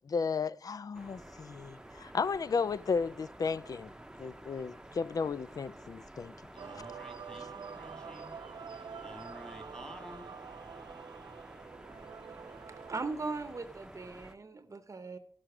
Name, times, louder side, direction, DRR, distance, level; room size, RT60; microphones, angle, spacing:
voice 1, 0.1-3.9 4.2-6.3, left 5 dB, 55° left, 0.3 m, -34 dB
sound 1, 0.9-14.4, right 1 dB, 10° right, 0.8 m, -51 dB
voice 2, 6.5-8.3 8.6-10.3, equal, 10° left, 2.2 m, -51 dB
Male singing / Female singing / Musical instrument, 6.6-13.1, right 6 dB, 80° right, 0.4 m, -47 dB
voice 3, 12.9-15.2, right 3 dB, 45° right, 0.8 m, -38 dB
14.5 x 6.4 x 5.9 m
wide cardioid pair, 85°, 7 cm